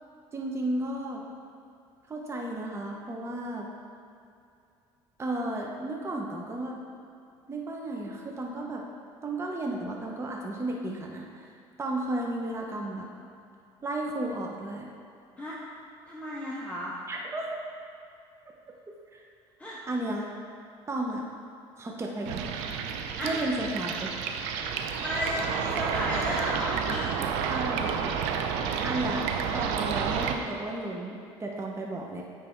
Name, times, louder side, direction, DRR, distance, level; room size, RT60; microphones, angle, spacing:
voice 1, 0.3-1.2 2.1-3.7 5.2-6.8 7.5-8.8 9.2-13.1 13.8-14.9 17.1-17.6 19.1-19.2 19.9-20.3 20.9-21.2 21.8-22.4 23.2-24.1 27.5-27.9 28.8-32.2, right 1 dB, 25° right, -1 dB, 0.8 m, -33 dB
voice 2, 16.1-17.0 19.6-19.8 22.9-23.3 25.0-27.1 28.7-28.8, equal, 10° left, -6 dB, 1.0 m, -33 dB
sound 1, 22.3-30.4, right 7 dB, 85° right, 0.5 m, -30 dB
8.9 x 3.4 x 4.4 m, 2.5 s
supercardioid pair, 95°, 11 cm